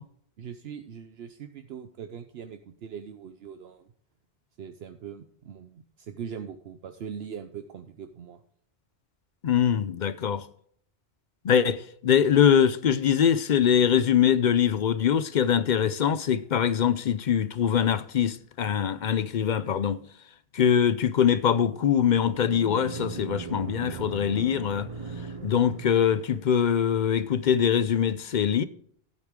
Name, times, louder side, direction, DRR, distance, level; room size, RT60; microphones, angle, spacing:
voice 1, 0.4-3.9 4.6-8.4, right 7 dB, 70° right, 0.9 m, -41 dB
voice 2, 9.4-10.4 11.4-20.0 20.5-24.9 25.4-28.6, left 8 dB, 55° left, 0.6 m, -23 dB
sound 1, 21.6-26.5, right 5 dB, 45° right, 0.5 m, -39 dB
13.0 x 8.3 x 3.7 m
omnidirectional pair, 1.1 m